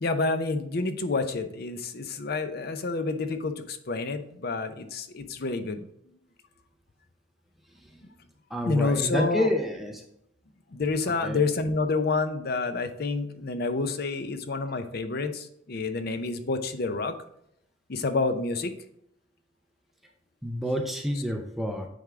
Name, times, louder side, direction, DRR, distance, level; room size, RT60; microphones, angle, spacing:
voice 1, 0.0-5.9 8.6-9.5 10.7-17.2 17.9-18.7, left 3 dB, 50° left, 9 dB, 0.6 m, -28 dB
voice 2, 8.5-10.0 11.2-11.4 20.4-21.9, left 1 dB, ahead, 2 dB, 0.6 m, -28 dB
9.1 x 3.5 x 3.6 m, 0.74 s
head